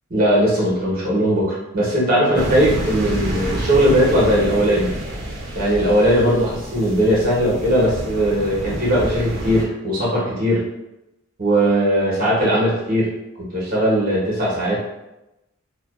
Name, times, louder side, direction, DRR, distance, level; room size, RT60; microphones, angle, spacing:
voice 1, 0.1-4.9 5.5-10.6 11.4-13.1 13.5-14.8, equal, 40° right, -7 dB, 0.9 m, -19 dB
sound 1, 2.3-9.6, right 1 dB, 60° right, 0.6 m, -28 dB
2.4 x 2.2 x 2.3 m, 0.95 s
head